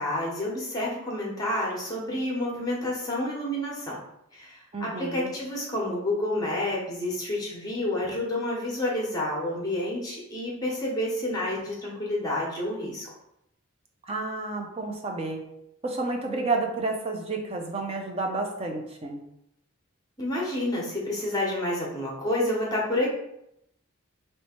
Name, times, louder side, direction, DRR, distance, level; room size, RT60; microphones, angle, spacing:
voice 1, 0.0-4.0 4.3-13.1 20.2-23.1, left 1 dB, 15° left, -3 dB, 1.0 m, -29 dB
voice 2, 4.7-5.3 14.1-15.4 15.8-19.2, right 3 dB, 25° right, 2 dB, 0.5 m, -30 dB
3.1 x 3.1 x 4.4 m, 0.80 s
head